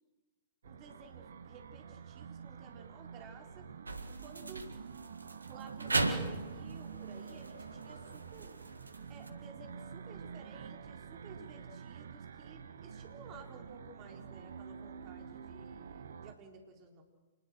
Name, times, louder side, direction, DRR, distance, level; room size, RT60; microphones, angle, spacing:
voice 1, 0.6-3.7 4.2-4.7 5.5-8.5 9.1-17.0, right 4 dB, 35° right, 3 dB, 4.1 m, -54 dB
sound 1, 0.6-16.3, right 6 dB, 65° right, 1.2 m, -48 dB
sound 2, 3.9-9.3, right 3 dB, 80° right, 1.8 m, -38 dB
27.5 x 21.0 x 6.5 m, 1.3 s
figure-of-eight pair, 110°, 0 cm